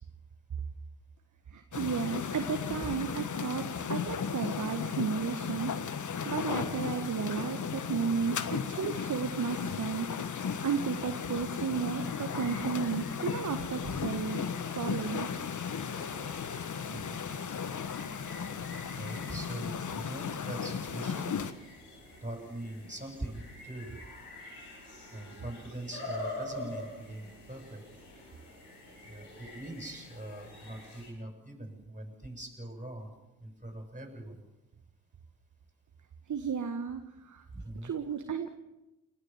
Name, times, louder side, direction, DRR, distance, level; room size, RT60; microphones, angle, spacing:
voice 1, 1.5-5.7 6.2-10.1 10.6-14.4 14.8-15.3 36.3-37.4 37.8-38.5, right 6 dB, 40° right, 7 dB, 1.6 m, -33 dB
sound 1, 1.7-21.5, left 6 dB, 40° left, 1.5 m, -35 dB
voice 2, 4.3-4.6 16.8-17.2 19.0-21.4 21.9-24.0 25.1-27.8 29.0-33.1 33.4-34.4 37.5-37.9, right 1 dB, 15° right, 3 dB, 8.0 m, -42 dB
sound 2, 11.6-31.1, left 1 dB, 85° left, 5.0 m, -47 dB
28.5 x 13.5 x 7.4 m, 0.99 s
hypercardioid pair, 40°, 45 cm